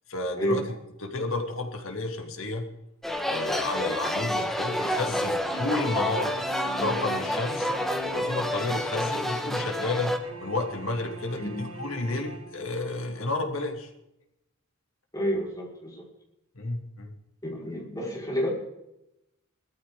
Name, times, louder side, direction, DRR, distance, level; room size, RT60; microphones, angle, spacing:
voice 1, 0.1-2.7 3.3-6.4 6.8-7.7 8.0-13.9 16.5-17.1, left 2 dB, 70° left, 3 dB, 2.7 m, -31 dB
sound 1, 3.0-10.2, equal, ahead, 1.3 m, -29 dB
sound 2, 5.5-13.2, equal, 70° right, 2.4 m, -44 dB
voice 2, 15.1-16.1 17.4-18.5, equal, 20° left, -3 dB, 4.9 m, -29 dB
19.5 x 14.0 x 3.8 m, 0.87 s
head